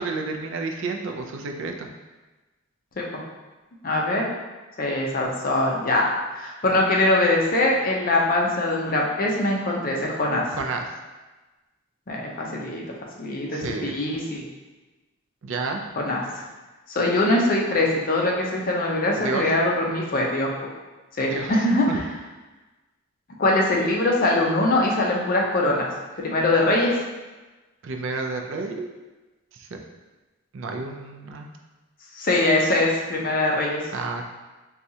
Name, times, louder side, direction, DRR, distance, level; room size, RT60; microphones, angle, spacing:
voice 1, 0.0-1.9 10.5-10.9 13.5-14.0 15.4-15.8 19.2-19.5 21.2-21.6 21.9-22.0 27.8-28.9 29.6-29.7 30.5-31.5 33.9-34.2, right 3 dB, 65° right, 3 dB, 0.4 m, -30 dB
voice 2, 3.8-4.3 4.8-6.1 6.4-10.5 12.1-12.8 13.2-14.4 16.0-16.2 16.9-20.5 21.2-22.0 23.4-25.9 26.2-26.9 32.2-33.8, left 2 dB, 45° left, -2 dB, 0.5 m, -22 dB
4.1 x 2.3 x 2.7 m, 1.2 s
head